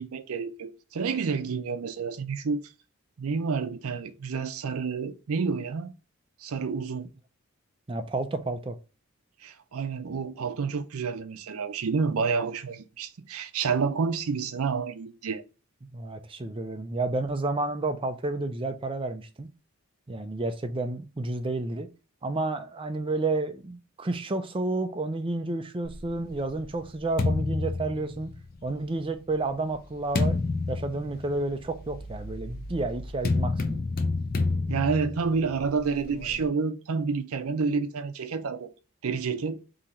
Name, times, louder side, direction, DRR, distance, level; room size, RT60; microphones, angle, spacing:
voice 1, 0.0-2.7 3.2-5.9 6.4-7.1 9.4-15.4 34.7-38.7 39.0-39.6, right 5 dB, 75° right, 0.5 m, -29 dB
voice 2, 7.9-8.8 15.8-19.5 20.1-21.9 22.2-28.3 28.6-30.4 30.7-33.8, right 2 dB, 25° right, 0.4 m, -30 dB
sound 1, 25.8-28.7 29.4-36.4, left 3 dB, 40° left, 0.5 m, -30 dB
3.8 x 2.9 x 4.2 m
head